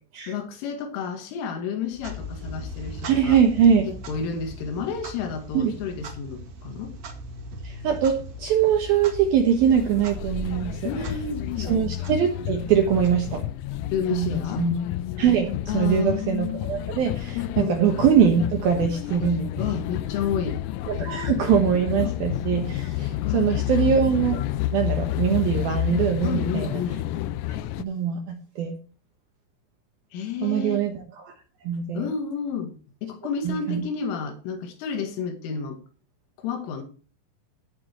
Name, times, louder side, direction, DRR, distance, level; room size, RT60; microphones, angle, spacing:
voice 1, 0.3-3.4 3.9-6.9 10.8-11.7 13.9-14.7 15.7-16.2 17.4-17.8 19.6-20.6 22.0-22.1 23.2-23.8 26.2-27.0 30.1-30.9 31.9-32.8 33.0-35.8 36.4-36.8, left 6 dB, 75° left, 4.3 m, -31 dB
Clock, 1.9-13.8, equal, 55° right, 2.1 m, -39 dB
voice 2, 3.0-3.9 5.5-5.7 7.6-10.9 11.6-13.4 14.1-14.7 15.2-19.7 20.9-24.4 24.7-26.8 27.5-28.7 30.4-31.3 31.6-32.1 33.4-33.8, right 8 dB, 70° right, 2.3 m, -23 dB
sound 1, 9.7-27.8, left 13 dB, 90° left, 3.3 m, -30 dB
17.5 x 7.6 x 3.0 m
omnidirectional pair, 5.9 m